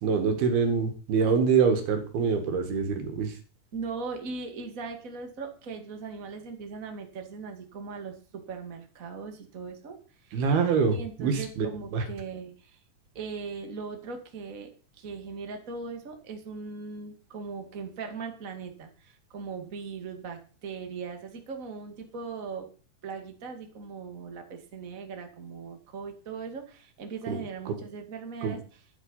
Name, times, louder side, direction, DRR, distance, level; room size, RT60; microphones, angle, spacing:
voice 1, 0.0-3.3 10.3-11.7 11.9-12.1 27.3-27.4 27.7-27.8 28.4-28.6, right 5 dB, 90° right, 7 dB, 3.8 m, -25 dB
voice 2, 3.7-10.4 10.9-12.8 13.1-22.7 23.0-28.8, right 5 dB, 25° right, 5 dB, 2.2 m, -39 dB
12.5 x 10.0 x 5.6 m, 0.37 s
omnidirectional pair, 4.3 m